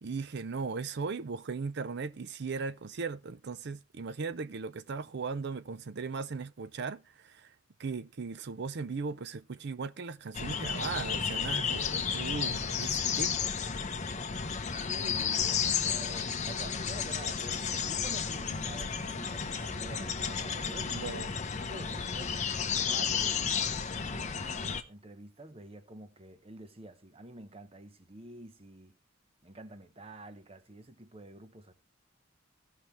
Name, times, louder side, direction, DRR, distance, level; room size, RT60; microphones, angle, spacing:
voice 1, 0.0-7.5 7.8-13.4 20.9-21.4, right 4 dB, 55° right, 0.5 m, -37 dB
sound 1, 10.3-24.8, left 6 dB, 35° left, 0.8 m, -32 dB
voice 2, 14.7-21.1 21.5-22.4 22.7-23.8 24.1-29.0 29.4-31.7, right 1 dB, 30° right, 0.9 m, -48 dB
17.0 x 5.8 x 3.2 m
head